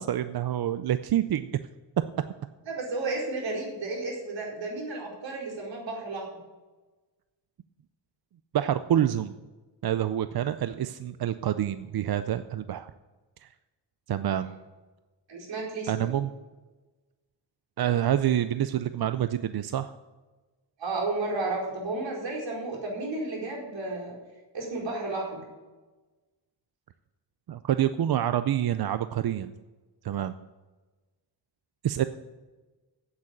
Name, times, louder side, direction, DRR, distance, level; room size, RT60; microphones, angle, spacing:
voice 1, 0.0-1.5 8.5-9.3 9.8-12.9 14.1-14.5 15.9-16.3 17.8-19.9 27.5-29.5 30.0-30.3 31.8-32.0, right 11 dB, 60° right, 11 dB, 0.5 m, -27 dB
voice 2, 2.7-6.3 14.2-14.5 15.3-16.1 20.8-24.1 24.5-25.4, right 2 dB, 80° right, -4 dB, 4.7 m, -32 dB
8.9 x 8.1 x 8.7 m, 1.2 s
wide cardioid pair, 100°, 44 cm